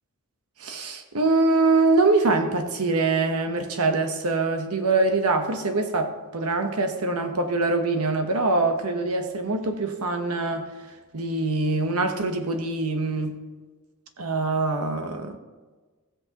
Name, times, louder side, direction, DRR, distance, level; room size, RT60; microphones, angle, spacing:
voice 1, 0.6-10.7 11.1-13.4 14.2-15.4, right 3 dB, 75° right, 6 dB, 1.1 m, -24 dB
15.5 x 8.3 x 3.0 m, 1.3 s
head